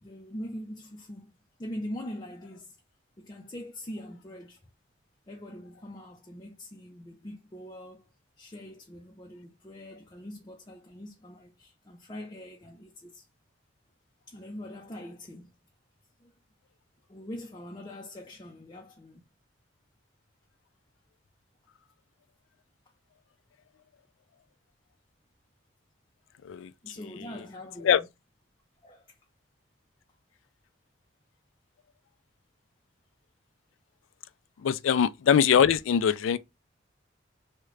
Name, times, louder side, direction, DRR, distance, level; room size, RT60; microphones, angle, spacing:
voice 1, 0.0-2.8 3.2-4.6 5.3-8.1 8.4-13.2 14.3-15.5 16.2-16.3 17.1-19.2 26.8-28.1 28.8-29.2 34.6-34.7, left 1 dB, 20° left, 0.5 m, -43 dB
voice 2, 34.6-36.4, left 8 dB, 80° left, 0.3 m, -22 dB
3.6 x 2.2 x 3.1 m
head